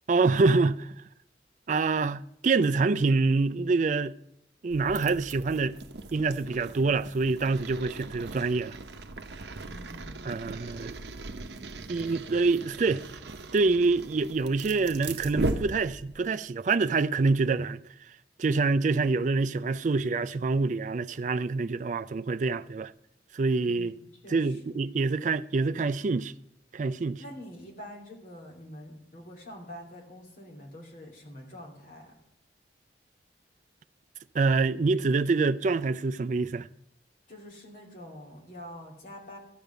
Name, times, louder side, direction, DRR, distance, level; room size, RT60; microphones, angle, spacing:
voice 1, 0.1-0.9 1.7-4.2 4.6-5.8 6.1-8.8 10.3-11.0 11.9-13.0 13.5-17.8 18.4-22.9 23.3-23.9 24.3-26.3 26.7-27.2 34.3-36.7, right 3 dB, 40° right, 0.4 m, -26 dB
sound 1, 4.7-16.3, right 2 dB, 65° right, 0.8 m, -38 dB
voice 2, 9.6-10.4 23.6-24.6 27.2-32.2 37.3-39.4, equal, 45° left, 2.8 m, -46 dB
13.5 x 5.3 x 9.0 m
head